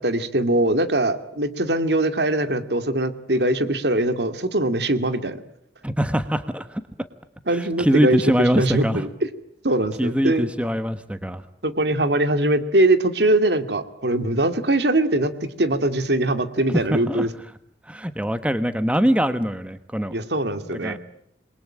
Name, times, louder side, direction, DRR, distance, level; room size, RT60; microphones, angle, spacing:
voice 1, 0.0-5.4 7.5-9.1 9.6-10.5 11.6-17.3 20.1-21.0, right 1 dB, 70° right, 9 dB, 2.4 m, -22 dB
voice 2, 5.8-6.8 7.5-9.0 10.0-11.4 16.7-17.3 17.9-20.1 20.8-21.0, equal, 5° right, 11 dB, 1.2 m, -23 dB
28.5 x 22.5 x 9.0 m, 0.69 s
head